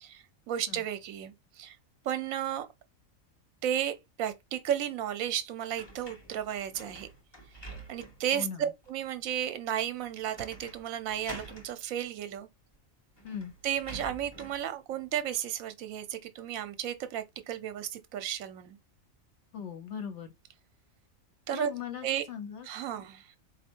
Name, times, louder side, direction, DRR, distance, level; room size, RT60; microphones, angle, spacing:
voice 1, 0.0-1.8 2.0-2.7 3.6-7.1 7.9-12.5 13.6-18.8 21.5-21.7 22.0-22.2 22.7-23.3, right 10 dB, 75° right, 1.0 m, -33 dB
sound 1, 5.8-8.3 8.8-8.9 10.3-10.8 11.1-11.7 12.7-12.8 13.2-14.7, right 1 dB, 20° left, 0.9 m, -47 dB
voice 2, 8.3-8.6 13.2-13.5 19.5-20.3 21.5-22.7 22.9-23.0, left 8 dB, 60° left, 0.9 m, -39 dB
4.2 x 2.4 x 4.3 m
omnidirectional pair, 1.4 m